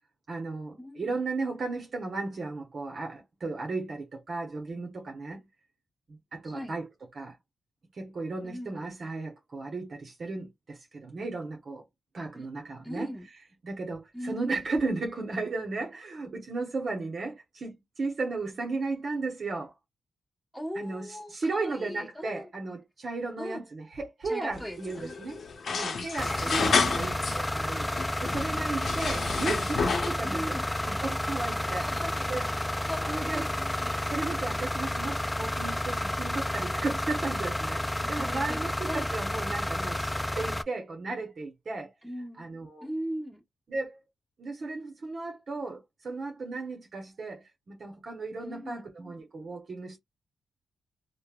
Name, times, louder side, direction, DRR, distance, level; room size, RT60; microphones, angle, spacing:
voice 1, 0.3-5.5 6.1-6.9 7.1-7.4 7.9-11.8 12.1-13.1 13.6-19.7 20.8-25.4 25.7-31.9 32.3-32.5 33.1-33.5 34.1-41.9 42.4-42.9 43.7-44.0 44.4-50.0, right 3 dB, 55° right, 0.8 m, -35 dB
voice 2, 0.8-1.2 6.4-6.7 8.4-8.9 12.3-12.5 12.8-13.3 14.1-14.6 20.5-22.5 23.4-23.6 24.2-25.2 26.4-27.0 30.2-30.7 31.8-34.0 38.0-38.6 38.9-39.1 42.0-42.5 42.8-43.4 48.4-48.9, equal, 5° right, 1.2 m, -39 dB
sound 1, 24.5-27.4 27.7-30.3, left 5 dB, 65° left, 0.7 m, -30 dB
sound 2, 26.2-40.6, left 1 dB, 10° left, 0.3 m, -31 dB
3.2 x 2.1 x 2.3 m
cardioid pair, 60°, 0 cm